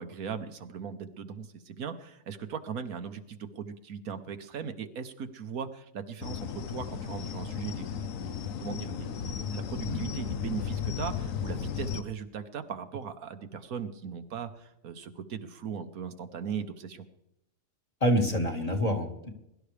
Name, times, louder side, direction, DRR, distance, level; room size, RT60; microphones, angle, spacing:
voice 1, 0.0-8.3 8.6-17.1, right 7 dB, 85° right, 8 dB, 1.5 m, -39 dB
sound 1, 6.2-12.0, left 7 dB, 70° left, 1.1 m, -35 dB
voice 2, 18.0-19.3, equal, 25° left, 2 dB, 1.9 m, -27 dB
22.0 x 12.0 x 3.4 m, 0.82 s
omnidirectional pair, 1.5 m